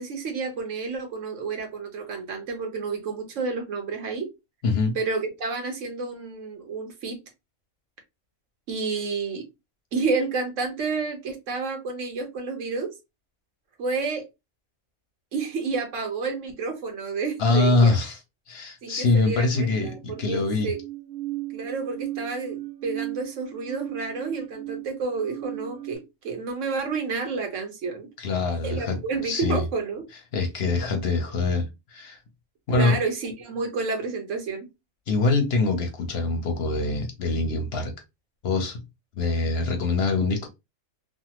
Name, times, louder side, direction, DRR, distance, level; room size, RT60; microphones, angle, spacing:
voice 1, 0.0-4.3 4.9-7.2 8.7-9.4 9.9-12.9 13.8-14.3 15.3-17.9 18.8-19.5 19.8-20.8 21.5-28.1 28.6-30.0 32.7-34.7, right 4 dB, 65° right, 1.3 m, -30 dB
voice 2, 4.6-5.0 17.4-18.2 18.5-20.7 28.2-29.6 30.3-32.2 32.7-33.0 35.1-37.9 38.4-38.8 39.2-40.5, left 3 dB, 55° left, 0.8 m, -24 dB
sound 1, 19.5-26.0, right 16 dB, 80° right, 1.0 m, -37 dB
3.3 x 2.0 x 2.9 m
omnidirectional pair, 1.5 m